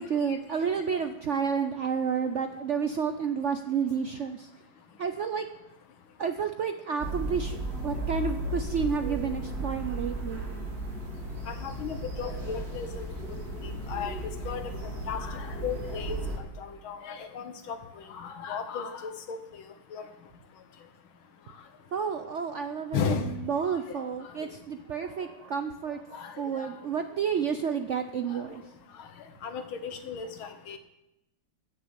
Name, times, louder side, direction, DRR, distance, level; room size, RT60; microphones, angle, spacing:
voice 1, 0.0-4.5 5.0-5.5 6.2-10.4 21.9-23.2 23.5-28.6, right 6 dB, 80° right, 7 dB, 0.6 m, -30 dB
sound 1, 7.0-16.4, right 1 dB, 50° right, 2.5 m, -35 dB
voice 2, 11.5-13.1 13.6-14.1 14.5-14.6 15.1-16.2 16.6-17.8 18.1-19.4 19.9-20.0 22.9-23.3 23.7-23.8 26.1-26.7 29.4-30.8, left 7 dB, 90° left, 7 dB, 2.1 m, -35 dB
14.0 x 6.7 x 8.7 m, 0.93 s
omnidirectional pair, 2.2 m